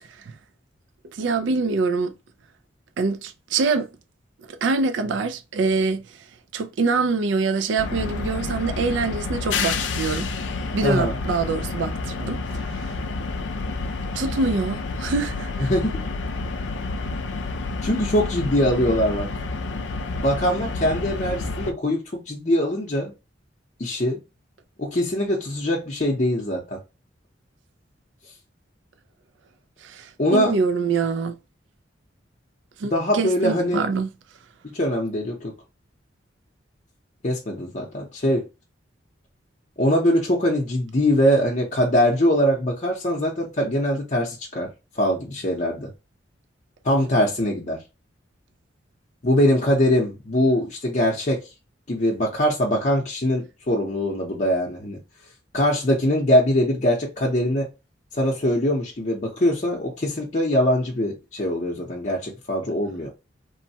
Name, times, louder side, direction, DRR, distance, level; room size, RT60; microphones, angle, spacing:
voice 1, 1.1-2.1 3.0-3.9 4.5-6.0 6.5-10.3 10.7-12.9 14.1-15.7 29.8-31.4 32.8-34.1, right 4 dB, 70° right, 0.4 m, -25 dB
sound 1, 7.8-21.7, left 3 dB, 70° left, 0.4 m, -29 dB
voice 2, 10.8-11.2 15.6-16.0 17.8-19.3 20.1-23.1 23.8-24.2 24.8-26.8 30.2-30.5 32.9-33.9 34.7-35.5 37.2-38.4 39.8-45.9 46.8-47.8 49.2-51.4 51.9-55.0 55.5-57.7 58.1-63.1, equal, 40° left, 0.7 m, -22 dB
3.1 x 2.2 x 2.7 m
head